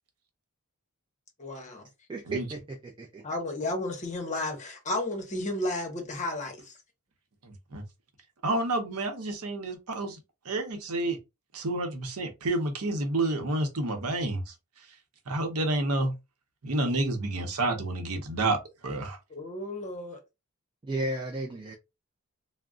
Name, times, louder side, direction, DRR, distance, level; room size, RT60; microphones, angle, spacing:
voice 1, 1.4-1.9 3.2-6.7 19.3-20.2, left 2 dB, 35° left, 0.9 m, -33 dB
voice 2, 2.1-3.2 20.8-21.7, right 2 dB, 20° right, 0.4 m, -34 dB
voice 3, 7.4-7.8 8.4-10.2 10.4-11.2 11.5-14.5 15.3-16.1 16.6-18.6 18.8-19.2, right 2 dB, 85° right, 0.7 m, -29 dB
2.4 x 2.1 x 3.6 m
head